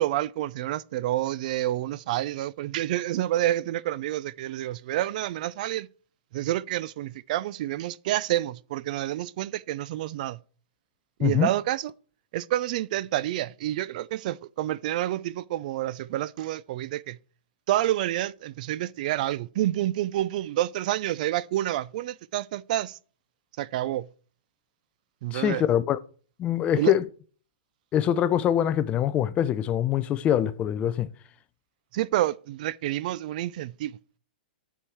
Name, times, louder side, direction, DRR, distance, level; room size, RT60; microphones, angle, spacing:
voice 1, 0.0-5.9 6.3-10.4 11.2-11.9 12.3-17.2 17.7-23.0 23.6-24.1 25.2-25.6 26.8-26.9 31.9-34.0, right 14 dB, 50° right, 0.4 m, -28 dB
voice 2, 25.3-26.0 26.4-27.1 27.9-31.1, left 10 dB, 20° left, 0.5 m, -24 dB
8.8 x 4.8 x 6.9 m
hypercardioid pair, 145°, 6 cm